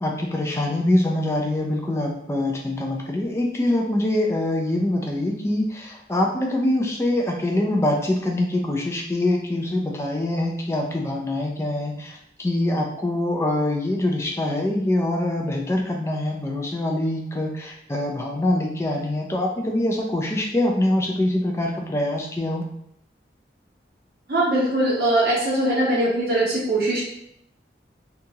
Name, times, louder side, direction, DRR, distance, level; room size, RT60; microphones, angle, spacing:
voice 1, 0.0-22.6, left 1 dB, 15° left, 1 dB, 0.3 m, -24 dB
voice 2, 24.3-27.0, right 1 dB, 55° right, -6 dB, 0.6 m, -21 dB
2.8 x 2.3 x 2.7 m, 0.74 s
head